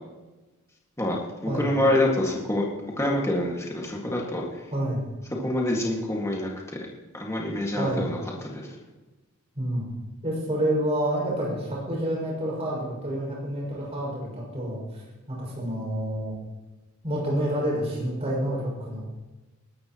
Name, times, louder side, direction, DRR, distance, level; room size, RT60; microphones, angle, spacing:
voice 1, 1.0-2.6 3.0-4.4 5.4-6.5 7.1-8.2 8.5-8.6, left 1 dB, 15° left, -2 dB, 2.0 m, -26 dB
voice 2, 4.7-5.0 7.8-8.1 9.6-9.9 10.2-16.3 17.0-19.0, right 1 dB, 30° right, -4 dB, 5.8 m, -28 dB
20.5 x 12.5 x 3.1 m, 1.2 s
head